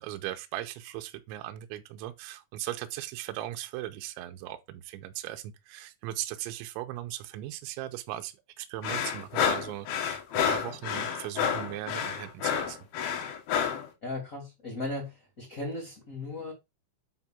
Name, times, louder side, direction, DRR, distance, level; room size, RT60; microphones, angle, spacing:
voice 1, 0.0-12.8, right 14 dB, 80° right, 3.0 m, -38 dB
sound 1, 8.8-13.9, left 8 dB, 80° left, 4.1 m, -29 dB
voice 2, 14.0-16.5, left 2 dB, 25° left, 2.2 m, -37 dB
8.0 x 3.4 x 5.9 m
omnidirectional pair, 5.4 m